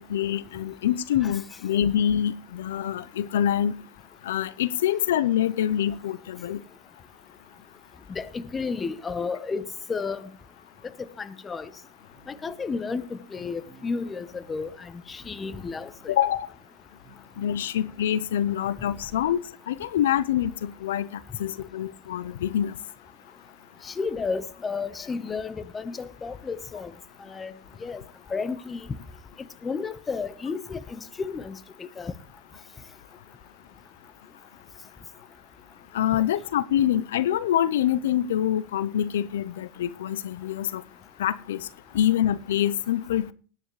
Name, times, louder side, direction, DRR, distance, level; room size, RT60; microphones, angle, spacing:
voice 1, 0.0-3.8 4.2-6.6 16.1-16.5 17.4-19.4 19.7-22.7 35.9-40.8 41.2-41.7 41.9-43.3, left 10 dB, 85° left, 0.6 m, -25 dB
voice 2, 8.1-10.3 11.2-11.7 12.3-16.1 23.8-26.9 27.2-27.5 27.8-28.0 28.3-28.9 29.6-32.1 36.1-36.2, left 4 dB, 20° left, 1.0 m, -32 dB
sound 1, 12.1-19.4, left 1 dB, 15° right, 4.9 m, -54 dB
19.0 x 9.7 x 3.2 m
hypercardioid pair, 110°, 0 cm